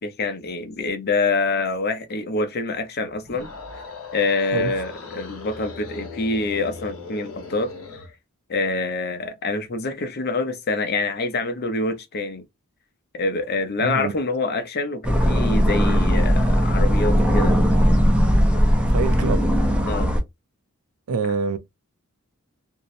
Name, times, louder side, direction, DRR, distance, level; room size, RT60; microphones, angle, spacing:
voice 1, 0.0-3.5 4.1-7.7 8.5-12.4 13.1-17.6 19.8-20.1, left 3 dB, 45° left, 0.5 m, -26 dB
sound 1, 3.2-8.1, left 4 dB, 80° left, 1.1 m, -38 dB
voice 2, 13.8-14.1 18.9-19.4 21.1-21.6, right 4 dB, 75° right, 0.4 m, -25 dB
sound 2, 15.0-20.2, equal, 5° right, 0.4 m, -18 dB
2.7 x 2.0 x 2.5 m
head